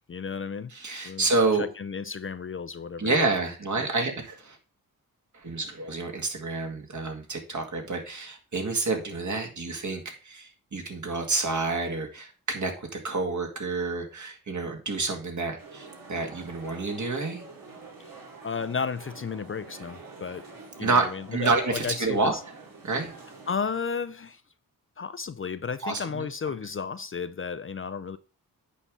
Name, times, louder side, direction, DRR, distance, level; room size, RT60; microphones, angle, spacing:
voice 1, 0.1-0.7 1.0-1.3 1.5-3.1 3.7-3.8 18.4-20.5 20.8-22.2 23.5-24.4 25.0-28.2, left 5 dB, 35° left, 0.5 m, -33 dB
voice 2, 0.7-1.7 3.0-4.6 5.3-17.5 20.8-22.3 22.8-23.1 25.8-26.3, right 3 dB, 55° right, 2.2 m, -28 dB
sound 1, 15.6-23.5, right 3 dB, 70° right, 2.5 m, -46 dB
8.4 x 5.5 x 3.7 m
cardioid pair, 65°, 36 cm